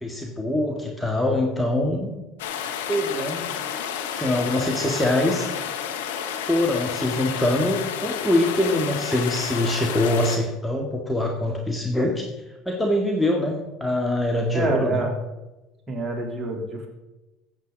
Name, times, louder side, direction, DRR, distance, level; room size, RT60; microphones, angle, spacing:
voice 1, 0.0-2.1 2.9-3.5 4.2-5.5 6.5-12.3 12.7-15.0, left 1 dB, 5° left, 1 dB, 1.9 m, -24 dB
sound 1, 2.4-10.4, left 8 dB, 80° left, 1.1 m, -31 dB
voice 2, 14.5-15.1 15.9-16.9, right 3 dB, 25° right, 0 dB, 3.6 m, -27 dB
15.0 x 8.1 x 4.0 m, 1.0 s
hypercardioid pair, 70°, 0 cm